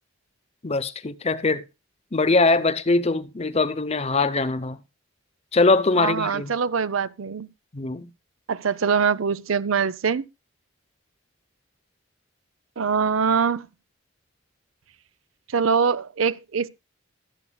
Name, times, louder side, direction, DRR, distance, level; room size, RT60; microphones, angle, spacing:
voice 1, 0.6-1.6 2.1-4.8 5.5-6.5 7.7-8.1, left 3 dB, 30° left, 0.7 m, -22 dB
voice 2, 6.0-7.5 8.5-10.2 12.8-13.6 15.5-16.7, right 6 dB, 85° right, 0.6 m, -23 dB
22.5 x 7.9 x 2.3 m
head